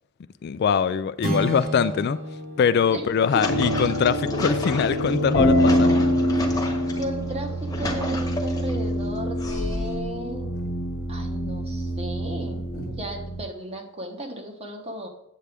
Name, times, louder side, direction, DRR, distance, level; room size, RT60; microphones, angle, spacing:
voice 1, 0.4-2.2 2.6-6.0, left 6 dB, 50° left, 13 dB, 0.3 m, -23 dB
sound 1, 1.2-5.7, right 1 dB, 45° right, 1.5 m, -34 dB
sound 2, 3.1-7.0 7.5-8.7 9.4-10.1, left 1 dB, 15° left, 1.1 m, -32 dB
sound 3, 3.5-13.4, equal, 65° left, 1.2 m, -25 dB
voice 2, 6.9-10.5 11.1-15.1, right 1 dB, 30° right, 3 dB, 1.2 m, -35 dB
8.5 x 7.9 x 3.5 m, 0.81 s
head